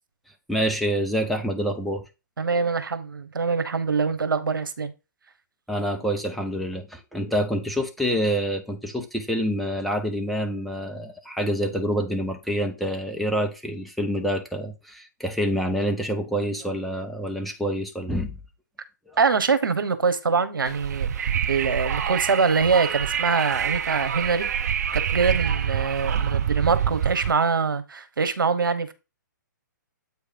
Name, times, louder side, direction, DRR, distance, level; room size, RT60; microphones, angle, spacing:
voice 1, 0.5-2.0 5.7-18.4 19.1-19.2, equal, ahead, 0.7 m, -27 dB
voice 2, 2.4-4.9 19.2-24.5 24.9-28.9, right 5 dB, 85° right, 1.1 m, -24 dB
Wind, 20.7-27.3, right 8 dB, 50° right, 0.8 m, -26 dB
8.2 x 3.2 x 5.1 m
hypercardioid pair, 145°, 11 cm